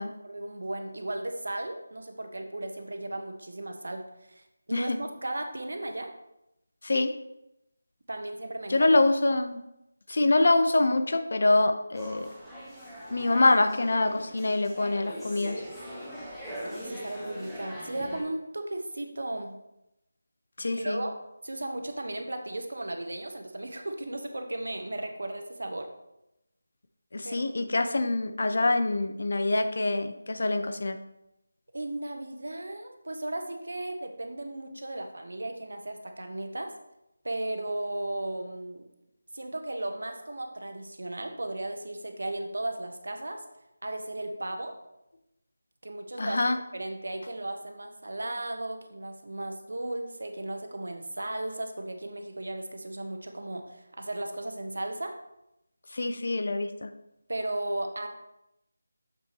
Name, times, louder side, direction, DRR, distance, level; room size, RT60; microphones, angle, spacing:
voice 1, 0.0-4.0 4.3-4.4 4.7-6.1 8.1-8.9 16.6-19.5 20.7-21.1 21.4-25.9 27.2-27.5 31.7-36.7 37.2-38.8 39.3-43.4 43.8-44.7 45.8-55.1 57.3-58.1, right 1 dB, 75° right, 5 dB, 1.0 m, -35 dB
voice 2, 6.8-7.1 8.7-9.6 10.1-12.3 13.1-15.6 20.6-21.0 27.1-31.0 46.2-46.6 55.9-56.9, left 2 dB, 60° left, 8 dB, 0.6 m, -25 dB
sound 1, 11.9-18.2, equal, ahead, 1.0 m, -41 dB
7.0 x 5.9 x 2.9 m, 0.86 s
figure-of-eight pair, 170°, 0 cm